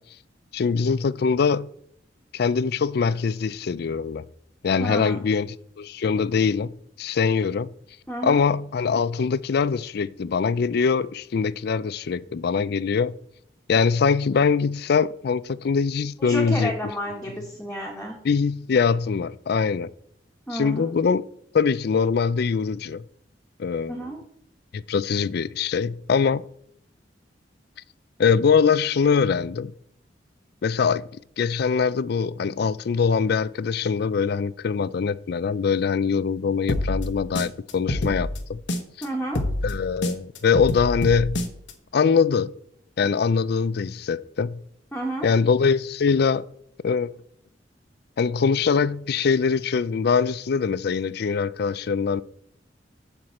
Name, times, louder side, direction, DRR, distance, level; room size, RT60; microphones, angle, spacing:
voice 1, 0.5-1.7 2.3-4.2 4.6-7.7 8.2-13.1 13.7-16.7 18.2-19.9 20.5-21.2 21.5-23.0 23.6-24.0 24.7-26.5 28.2-29.7 30.6-31.1 31.4-38.6 39.6-41.5 41.9-42.5 43.0-44.6 45.2-46.5 46.8-47.1 48.2-52.2, left 5 dB, 60° left, 0.4 m, -23 dB
voice 2, 4.8-5.2 8.1-8.4 16.2-18.2 20.5-20.9 23.9-24.2 39.0-39.4 44.9-45.3, right 1 dB, 5° left, 1.4 m, -31 dB
sound 1, 36.7-39.0 39.3-41.7, left 1 dB, 75° left, 1.2 m, -27 dB
7.7 x 5.8 x 7.1 m
head